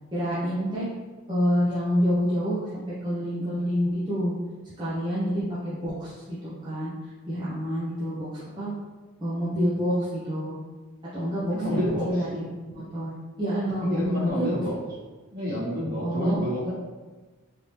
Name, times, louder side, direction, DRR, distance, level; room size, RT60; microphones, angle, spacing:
voice 1, 0.1-0.9 1.3-4.3 4.8-6.9 7.3-8.7 9.2-10.6 11.1-12.4 12.7-13.1 13.4-14.6 16.0-16.4, equal, 20° right, -10 dB, 0.7 m, -27 dB
voice 2, 11.5-12.2 13.8-14.8 15.3-16.7, equal, 45° right, -7 dB, 1.3 m, -28 dB
3.4 x 2.7 x 3.1 m, 1.3 s
head